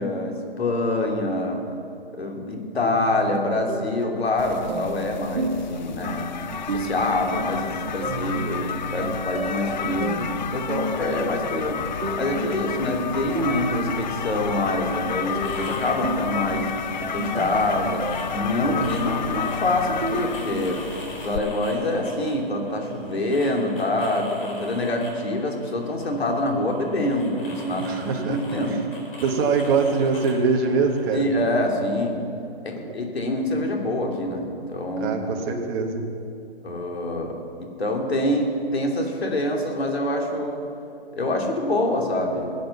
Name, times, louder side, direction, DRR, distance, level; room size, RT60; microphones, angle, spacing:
voice 1, 0.0-1.6 2.1-6.3 6.7-11.8 12.1-16.7 17.1-20.8 21.2-28.8 31.1-32.2 32.6-35.2 36.6-40.6 41.1-42.7, left 1 dB, 80° left, 1 dB, 3.1 m, -26 dB
sound 1, 2.8-20.8, right 2 dB, 70° right, 1.7 m, -32 dB
sound 2, 4.4-21.4, left 7 dB, 45° left, 0.6 m, -31 dB
sound 3, 13.9-31.4, left 1 dB, 65° left, 4.6 m, -42 dB
voice 2, 27.8-28.8 29.2-31.2 32.8-32.9 35.0-36.1, right 4 dB, 20° right, 2 dB, 1.3 m, -23 dB
17.0 x 8.7 x 7.2 m, 2.6 s
hypercardioid pair, 155°, 31 cm